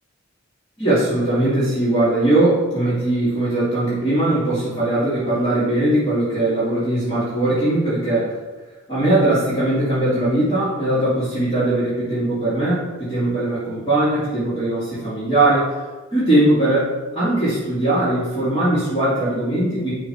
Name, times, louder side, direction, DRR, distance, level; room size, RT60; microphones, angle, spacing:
voice 1, 0.8-8.4 8.9-15.8 16.1-19.9, right 1 dB, 20° left, -13 dB, 2.6 m, -20 dB
11.0 x 3.8 x 4.3 m, 1.3 s
head